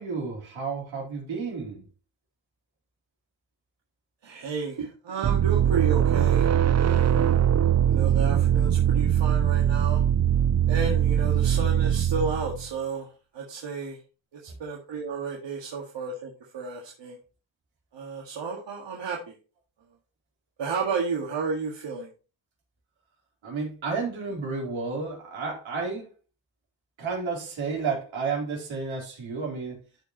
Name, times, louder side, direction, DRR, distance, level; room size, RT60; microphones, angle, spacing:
voice 1, 0.0-1.8 23.4-26.0 27.0-29.8, right 4 dB, 85° right, -2 dB, 4.0 m, -31 dB
voice 2, 4.2-7.4 7.9-10.0 10.7-13.1 13.3-14.0 14.6-17.2 17.9-19.4 20.6-22.1, right 5 dB, 65° right, -1 dB, 1.9 m, -32 dB
sound 1, 5.2-12.7, right 10 dB, 35° right, 0.5 m, -22 dB
14.0 x 5.0 x 3.0 m, 0.34 s
cardioid pair, 60°, 46 cm